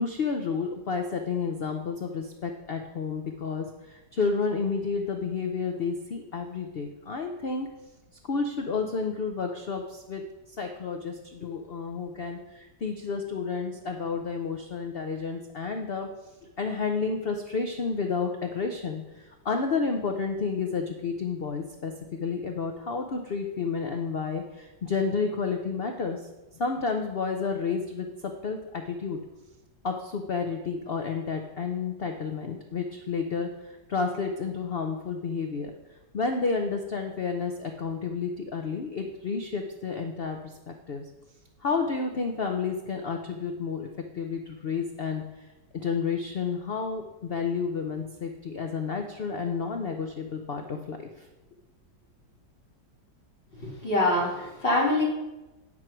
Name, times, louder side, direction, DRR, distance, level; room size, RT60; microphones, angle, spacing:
voice 1, 0.0-7.7 8.2-10.2 10.5-16.1 16.6-26.2 26.5-29.2 29.8-35.7 36.1-41.0 41.6-43.9 44.1-45.5 45.7-51.3, left 5 dB, 80° left, 4 dB, 0.5 m, -31 dB
voice 2, 53.6-55.0, left 1 dB, 30° left, -4 dB, 2.4 m, -24 dB
9.6 x 4.6 x 6.0 m, 1.1 s
omnidirectional pair, 1.9 m